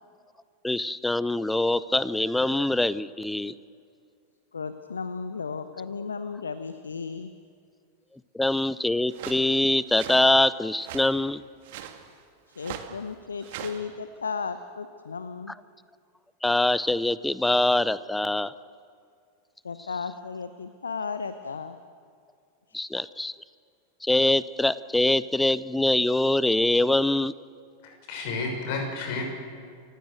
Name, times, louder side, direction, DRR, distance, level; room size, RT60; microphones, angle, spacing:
voice 1, 0.6-3.5 8.3-11.4 16.4-18.5 22.7-23.3 24.0-27.3, left 2 dB, 5° left, 18 dB, 0.6 m, -24 dB
voice 2, 4.5-7.3 12.6-15.5 19.6-21.8 22.7-22.8, left 5 dB, 75° left, 11 dB, 0.9 m, -34 dB
sound 1, 9.1-9.4 9.9-10.3 10.8-11.1 11.6-12.0 12.6-12.9 13.4-13.8, right 11 dB, 50° right, 2.1 m, -39 dB
voice 3, 27.8-29.2, left 3 dB, 50° left, 3 dB, 6.1 m, -31 dB
28.5 x 16.0 x 7.9 m, 2.4 s
figure-of-eight pair, 90°, 0 cm